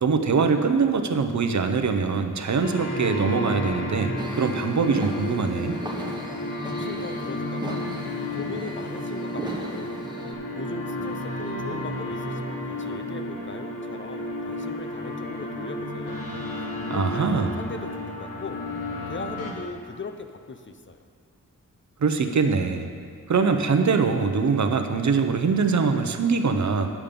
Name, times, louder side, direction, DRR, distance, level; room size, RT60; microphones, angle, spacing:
voice 1, 0.0-5.7 16.9-17.6 22.0-22.9 23.3-26.9, right 5 dB, 60° right, 7 dB, 0.7 m, -23 dB
sound 1, 2.6-19.5, left 1 dB, 80° left, 1.4 m, -32 dB
sound 2, 4.2-10.3, right 1 dB, 15° right, 1.1 m, -36 dB
voice 2, 6.6-7.9 8.3-10.0 10.5-16.3 16.9-18.6 19.1-21.0, left 3 dB, 35° left, 7 dB, 0.5 m, -39 dB
10.0 x 7.4 x 5.2 m, 2.1 s
wide cardioid pair, 110°, 33 cm